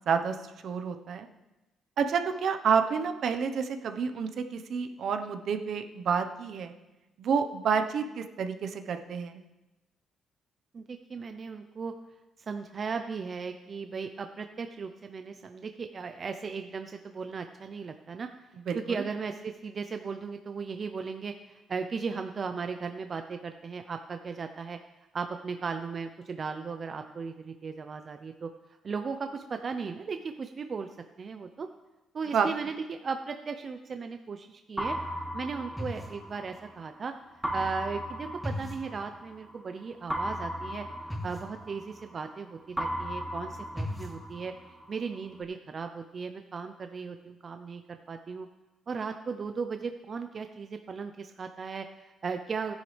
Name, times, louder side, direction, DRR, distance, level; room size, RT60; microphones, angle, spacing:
voice 1, 0.6-1.3 2.0-6.7 7.2-9.4 18.7-19.0 32.3-32.5, right 6 dB, 65° right, 7 dB, 1.0 m, -29 dB
voice 2, 10.7-11.9 12.5-18.3 18.7-24.8 25.1-28.5 28.8-30.9 31.2-31.7 32.1-35.0 35.3-37.1 37.5-40.8 41.2-44.5 44.9-48.5 48.9-52.7, right 5 dB, 45° right, 7 dB, 0.7 m, -36 dB
sound 1, 34.8-36.8 37.4-39.5 40.1-42.4 42.8-44.8, equal, 5° right, 1.8 m, -35 dB
16.0 x 10.5 x 3.4 m, 1.0 s
cardioid pair, 90°, 0 cm